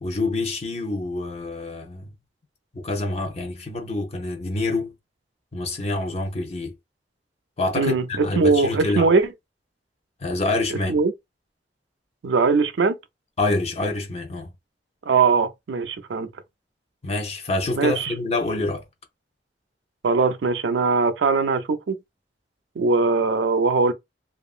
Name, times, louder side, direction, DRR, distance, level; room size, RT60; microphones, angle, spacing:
voice 1, 0.0-2.1 2.7-4.9 5.5-6.7 7.6-9.1 10.2-11.0 13.4-14.5 17.0-18.8, left 2 dB, 35° left, 0.6 m, -26 dB
voice 2, 7.8-8.1 8.4-9.3 10.9-11.1 12.2-13.0 15.1-16.3 17.8-18.1 20.0-22.0 22.8-23.9, right 4 dB, 90° right, 0.4 m, -20 dB
2.8 x 2.4 x 2.4 m
head